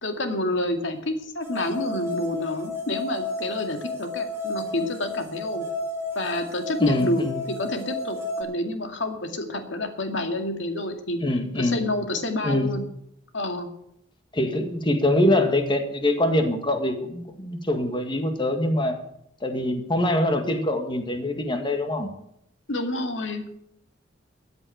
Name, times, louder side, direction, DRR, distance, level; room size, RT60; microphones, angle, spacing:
voice 1, 0.0-5.7 6.2-11.2 11.6-12.9 13.3-13.7 22.7-23.5, left 1 dB, 70° left, 5 dB, 2.3 m, -28 dB
sound 1, 1.4-8.4, left 2 dB, 15° right, 4.4 m, -32 dB
voice 2, 6.8-7.4 11.2-11.8 12.4-12.7 14.3-19.0 19.4-22.1, left 1 dB, 25° left, 6 dB, 1.8 m, -24 dB
14.0 x 7.8 x 9.3 m, 0.74 s
head